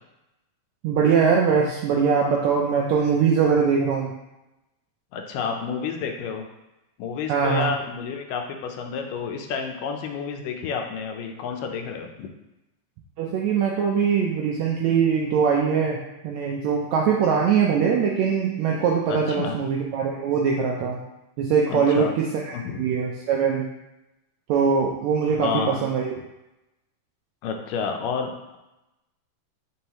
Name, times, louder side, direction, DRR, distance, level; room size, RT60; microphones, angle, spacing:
voice 1, 0.8-4.1 7.3-7.7 13.2-21.0 21.4-23.7 24.5-26.2, right 6 dB, 80° right, -1 dB, 1.6 m, -22 dB
voice 2, 5.1-6.5 7.0-12.3 19.1-19.6 21.7-22.1 22.5-22.8 25.4-25.8 27.4-28.6, left 6 dB, 80° left, 4 dB, 2.2 m, -30 dB
6.4 x 5.5 x 3.0 m, 0.95 s
omnidirectional pair, 3.9 m